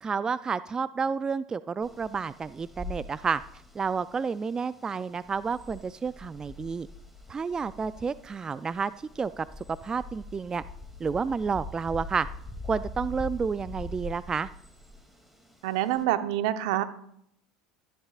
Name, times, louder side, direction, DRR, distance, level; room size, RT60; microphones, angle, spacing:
voice 1, 0.0-3.4 3.8-6.9 7.3-9.5 9.8-10.6 11.0-12.3 12.6-14.5, right 5 dB, 25° right, 16 dB, 0.3 m, -30 dB
sound 1, 1.8-16.0, left 2 dB, 5° right, 2.6 m, -44 dB
voice 2, 15.6-16.8, right 13 dB, 70° right, 11 dB, 0.8 m, -26 dB
13.5 x 11.0 x 2.4 m, 0.71 s
hypercardioid pair, 80°, 3 cm